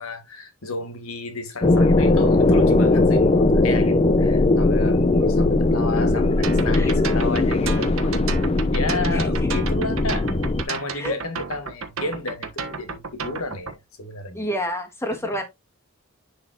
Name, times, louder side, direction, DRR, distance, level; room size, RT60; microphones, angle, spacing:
voice 1, 0.0-8.1 8.7-10.3 10.7-14.5 15.2-15.4, left 2 dB, 85° left, 1.8 m, -32 dB
sound 1, 1.6-10.6, left 2 dB, 30° left, 0.5 m, -19 dB
sound 2, 6.4-13.7, right 5 dB, 75° right, 1.3 m, -32 dB
voice 2, 9.1-9.6 10.9-11.2 14.3-15.5, equal, 15° left, 1.6 m, -29 dB
10.5 x 4.0 x 2.5 m
head